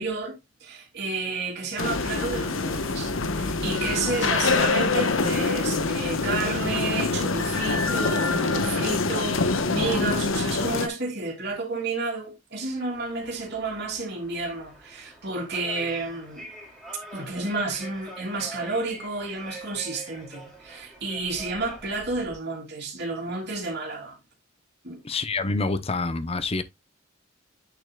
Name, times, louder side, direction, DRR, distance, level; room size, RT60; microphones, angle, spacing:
voice 1, 0.0-16.5 17.1-24.2 24.8-25.0, right 3 dB, 55° right, 2.7 m, -31 dB
sound 1, 1.8-10.9, left 3 dB, 85° left, 1.0 m, -25 dB
sound 2, 12.9-22.4, right 1 dB, ahead, 3.7 m, -45 dB
voice 2, 25.0-26.6, left 3 dB, 30° left, 0.7 m, -27 dB
8.3 x 7.1 x 2.3 m
head